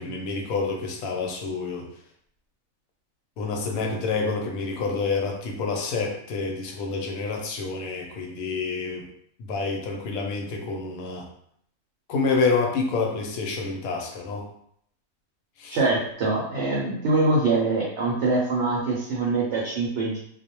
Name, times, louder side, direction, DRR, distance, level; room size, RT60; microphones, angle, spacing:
voice 1, 0.0-1.9 3.4-9.1 9.4-11.3 12.1-14.5 15.6-15.8, left 4 dB, 75° left, 1 dB, 1.0 m, -28 dB
voice 2, 15.7-20.2, right 3 dB, 65° right, -4 dB, 0.7 m, -24 dB
2.4 x 2.1 x 2.8 m, 0.68 s
omnidirectional pair, 1.5 m